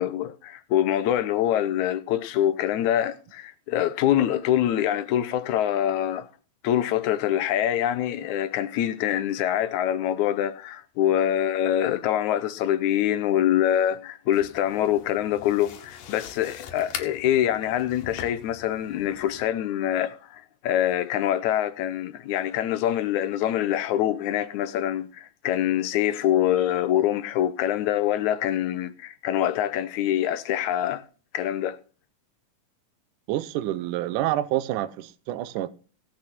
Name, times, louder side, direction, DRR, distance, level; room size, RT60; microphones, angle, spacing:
voice 1, 0.0-6.3 6.6-31.0 31.3-31.8, left 11 dB, 75° left, 1.9 m, -25 dB
sound 1, 14.3-19.5, left 9 dB, 90° left, 2.9 m, -42 dB
voice 2, 33.3-35.7, right 14 dB, 75° right, 2.2 m, -28 dB
17.0 x 6.3 x 5.9 m
omnidirectional pair, 3.8 m